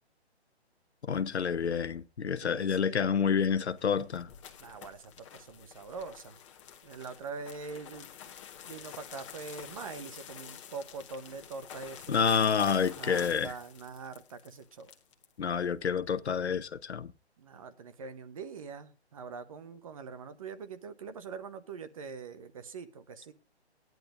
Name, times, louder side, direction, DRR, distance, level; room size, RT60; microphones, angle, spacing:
voice 1, 1.1-4.3 12.1-13.5 15.4-17.1, left 6 dB, 80° left, 1.0 m, -28 dB
voice 2, 2.4-3.3 4.6-6.4 6.8-8.1 8.7-12.3 13.0-14.9 17.4-23.3, right 5 dB, 30° right, 1.0 m, -43 dB
sound 1, 3.6-15.3, left 9 dB, 30° left, 1.4 m, -48 dB
17.0 x 10.5 x 2.6 m
hypercardioid pair, 160°, 33 cm